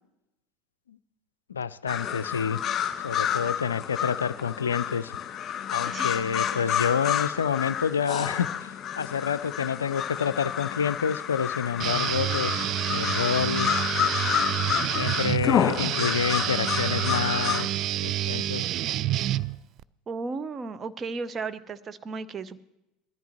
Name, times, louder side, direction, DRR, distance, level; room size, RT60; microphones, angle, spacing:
voice 1, 1.5-2.6 3.0-5.1 5.7-13.7 14.9-18.7, left 7 dB, 85° left, 16 dB, 0.4 m, -28 dB
sound 1, 1.9-17.6, left 9 dB, 40° left, 1.8 m, -29 dB
voice 2, 5.9-6.2 20.1-22.6, right 4 dB, 30° right, 12 dB, 0.8 m, -34 dB
Guitar, 11.8-19.8, right 13 dB, 50° right, 0.3 m, -28 dB
20.5 x 14.0 x 3.0 m, 0.93 s
figure-of-eight pair, 70°, 0 cm